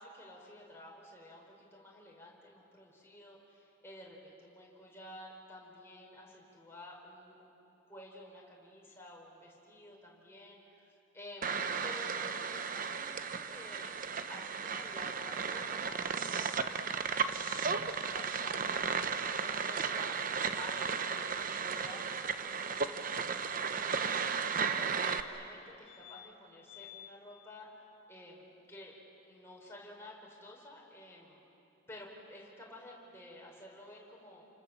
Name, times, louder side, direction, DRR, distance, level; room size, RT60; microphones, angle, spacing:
voice 1, 0.0-7.6 7.9-24.2 24.7-27.7 28.1-28.9 29.2-31.4 31.9-34.5, left 1 dB, 10° left, -3 dB, 4.9 m, -52 dB
sound 1, 11.4-25.2, right 5 dB, 40° right, 0.9 m, -35 dB
sound 2, 25.8-26.2 26.6-27.1 29.5-29.6 29.7-29.8, left 13 dB, 70° right, 4.8 m, -52 dB
29.5 x 26.5 x 7.3 m, 2.7 s
head